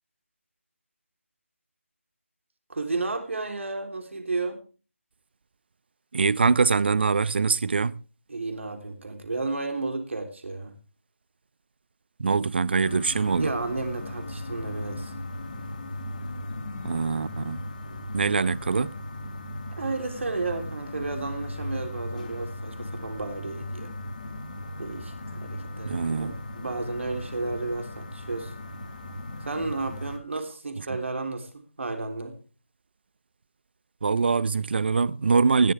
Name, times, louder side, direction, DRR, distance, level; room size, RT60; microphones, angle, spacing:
voice 1, 2.7-4.6 8.3-10.7 13.4-15.1 19.8-23.9 24.8-25.1 25.4-28.5 29.4-32.3, right 3 dB, 65° right, 3.3 m, -32 dB
voice 2, 6.1-7.9 12.2-13.5 16.8-17.6 18.1-18.9 25.8-26.3 34.0-35.7, right 4 dB, 50° right, 0.6 m, -23 dB
sound 1, 12.8-30.2, left 1 dB, 35° left, 3.0 m, -37 dB
20.0 x 14.0 x 3.4 m
figure-of-eight pair, 165°, 7 cm